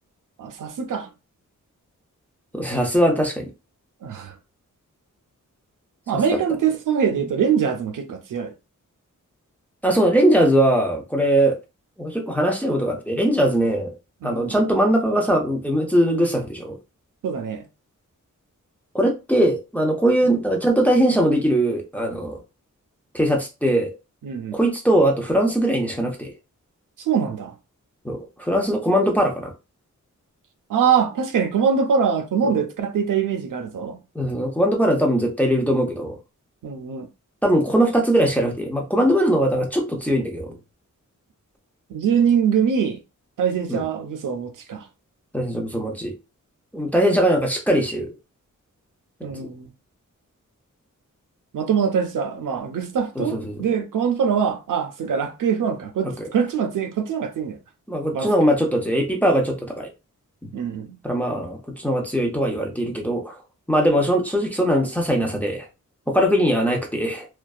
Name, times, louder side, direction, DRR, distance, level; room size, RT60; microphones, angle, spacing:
voice 1, 0.4-1.1 4.0-4.4 6.1-8.5 14.2-14.6 17.2-17.7 20.2-20.4 24.2-24.6 27.0-27.5 30.7-34.0 36.6-37.1 41.9-43.0 43.4-44.9 49.2-49.7 51.5-57.6 58.1-58.3 60.5-61.0, right 7 dB, 85° right, 0.5 m, -23 dB
voice 2, 2.5-3.5 9.8-11.6 12.0-13.9 14.2-16.8 18.9-22.4 23.1-23.9 24.5-26.3 28.0-29.5 32.4-32.6 34.1-36.2 37.4-40.5 43.7-43.8 45.3-46.1 46.7-48.1 49.3-49.5 53.2-53.6 56.0-56.3 57.9-59.9 60.4-60.5 61.0-63.4 63.7-65.7 66.1-67.3, right 1 dB, 5° left, 0.4 m, -21 dB
2.5 x 2.2 x 2.3 m
wide cardioid pair, 170°, 31 cm